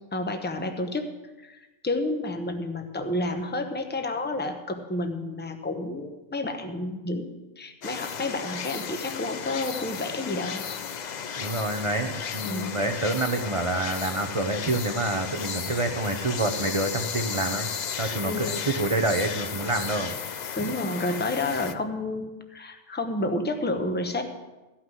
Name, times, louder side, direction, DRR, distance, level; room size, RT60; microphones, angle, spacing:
voice 1, 0.1-1.1 1.4-7.3 7.6-10.7 12.4-12.8 18.2-18.6 20.6-24.2, left 2 dB, 10° left, 6 dB, 0.8 m, -30 dB
sound 1, 7.8-21.7, left 7 dB, 60° left, 0.4 m, -34 dB
voice 2, 11.4-17.7 18.0-20.1, right 2 dB, 30° right, 5 dB, 0.7 m, -27 dB
14.5 x 5.8 x 7.9 m, 1.1 s
omnidirectional pair, 1.4 m